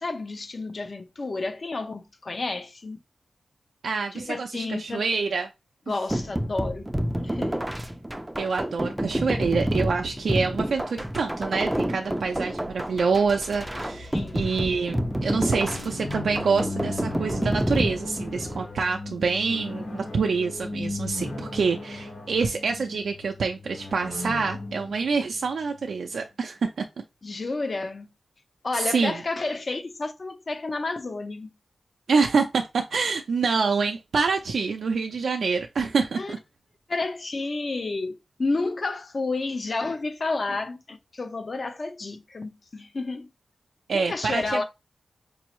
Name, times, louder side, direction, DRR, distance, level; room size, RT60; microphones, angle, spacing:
voice 1, 0.0-3.0 4.1-5.0 5.9-6.9 7.2-7.7 14.1-14.5 27.2-28.1 28.6-31.5 36.2-36.3 36.9-43.3 43.9-44.6, left 3 dB, 45° left, 0.7 m, -30 dB
voice 2, 3.8-5.5 8.4-26.8 28.7-29.2 32.1-36.4 43.9-44.6, right 5 dB, 80° right, 0.4 m, -26 dB
sound 1, 6.1-18.7, equal, 10° right, 0.4 m, -29 dB
sound 2, 9.9-15.1, left 1 dB, 85° left, 1.8 m, -48 dB
sound 3, 14.5-26.2, left 2 dB, 65° left, 2.0 m, -37 dB
5.3 x 2.0 x 3.0 m
wide cardioid pair, 75°, 0 cm